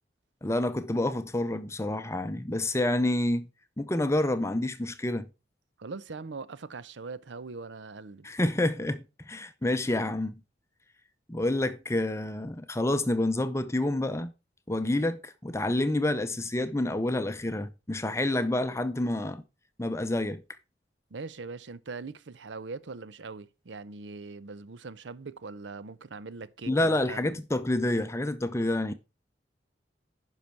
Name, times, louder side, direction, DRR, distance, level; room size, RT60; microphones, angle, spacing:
voice 1, 0.4-3.5 3.8-5.3 8.2-10.4 11.3-14.3 14.7-19.4 19.8-20.4 26.7-28.9, left 1 dB, 15° left, 0.6 m, -28 dB
voice 2, 5.8-8.3 21.1-27.4, right 4 dB, 90° right, 0.7 m, -41 dB
10.5 x 5.6 x 4.6 m
head